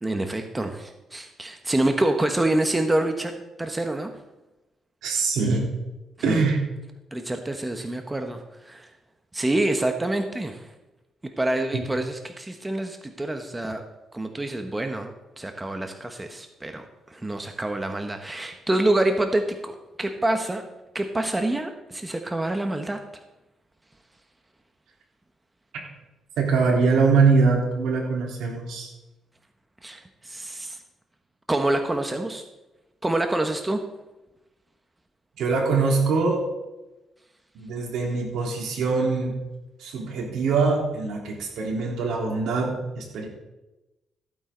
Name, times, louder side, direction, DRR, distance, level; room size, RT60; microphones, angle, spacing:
voice 1, 0.0-4.1 6.2-6.5 7.1-8.9 9.3-10.7 11.4-13.8 14.1-20.6 20.9-23.0 29.8-30.8 31.5-32.4 33.0-33.8, right 1 dB, 15° right, 6 dB, 1.2 m, -27 dB
voice 2, 5.0-5.7 6.2-6.6 11.7-11.8 26.4-28.9 35.4-36.5 37.5-39.4 39.8-43.3, right 4 dB, 80° right, -1 dB, 3.7 m, -23 dB
15.5 x 8.9 x 3.9 m, 1.0 s
cardioid pair, 90°, 0 cm